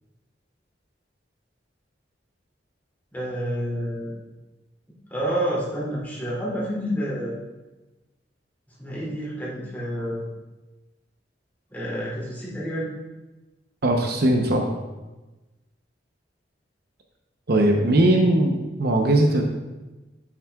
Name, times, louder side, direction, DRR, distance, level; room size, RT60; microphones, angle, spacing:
voice 1, 3.1-4.2 5.1-7.4 8.8-10.3 11.7-12.9 17.6-18.3, equal, 10° left, -8 dB, 2.7 m, -29 dB
voice 2, 13.8-14.7 17.5-19.4, right 1 dB, 60° right, 2 dB, 0.8 m, -19 dB
9.8 x 7.3 x 2.4 m, 1.1 s
head